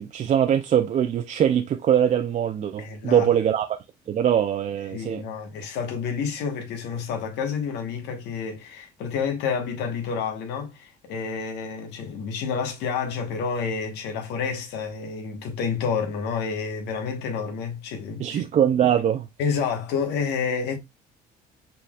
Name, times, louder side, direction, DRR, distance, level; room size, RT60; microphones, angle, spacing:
voice 1, 0.0-3.7 4.1-5.2 18.2-19.3, right 9 dB, 45° right, 0.5 m, -22 dB
voice 2, 2.8-3.3 4.9-18.4 19.4-20.8, left 6 dB, 85° left, 1.2 m, -29 dB
5.7 x 3.8 x 2.3 m
cardioid pair, 110°, 17 cm